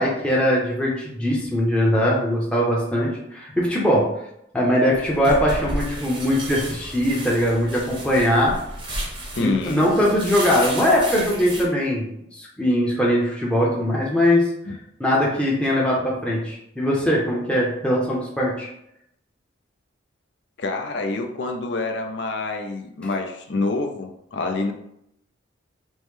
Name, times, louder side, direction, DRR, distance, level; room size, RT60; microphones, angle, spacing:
voice 1, 0.0-4.1 4.5-8.5 9.4-12.1 12.4-14.5 15.0-18.7, equal, 5° left, -5 dB, 0.7 m, -21 dB
sound 1, 4.9-11.6, right 1 dB, 25° right, 0.7 m, -33 dB
voice 2, 9.3-9.9 14.7-14.8 20.6-24.7, left 3 dB, 60° left, 5 dB, 0.5 m, -27 dB
5.3 x 2.1 x 3.1 m, 0.77 s
head